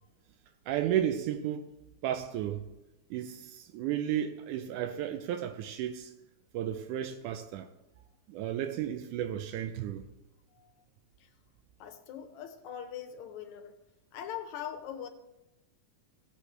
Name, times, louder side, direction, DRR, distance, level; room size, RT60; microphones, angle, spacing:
voice 1, 0.7-1.7 2.0-2.6 3.1-6.1 6.5-7.7 8.3-10.1, right 10 dB, 85° right, 2.1 m, -33 dB
voice 2, 10.5-10.8 11.2-11.3 11.8-13.8 14.1-15.1, left 9 dB, 75° left, 2.1 m, -42 dB
16.5 x 7.7 x 3.3 m
omnidirectional pair, 3.5 m